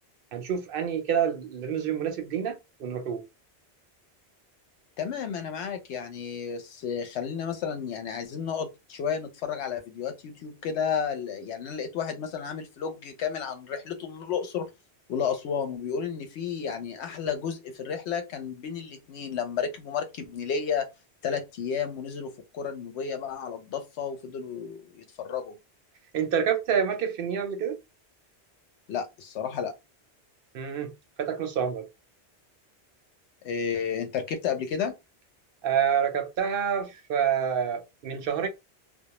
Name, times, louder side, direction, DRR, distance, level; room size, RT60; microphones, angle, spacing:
voice 1, 0.3-3.2 26.1-27.8 30.5-31.9 35.6-38.5, right 7 dB, 65° right, 0.7 m, -28 dB
voice 2, 5.0-14.7 15.1-20.9 21.2-25.5 28.9-29.7 33.4-34.9, left 7 dB, 85° left, 0.9 m, -32 dB
2.2 x 2.0 x 2.9 m
omnidirectional pair, 1.1 m